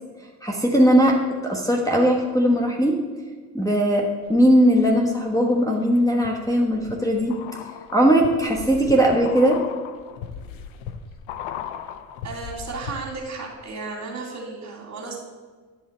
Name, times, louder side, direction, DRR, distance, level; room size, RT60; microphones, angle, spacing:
voice 1, 0.4-1.2 1.4-3.0 3.5-4.0 4.3-7.4 7.9-9.6, equal, 5° left, -2 dB, 1.2 m, -19 dB
sound 1, 4.3-5.0 5.5-13.3 13.6-13.7, left 8 dB, 70° left, 0.8 m, -38 dB
voice 2, 12.2-15.2, right 4 dB, 35° right, 0 dB, 2.4 m, -34 dB
9.9 x 5.6 x 4.3 m, 1.5 s
hypercardioid pair, 70°, 47 cm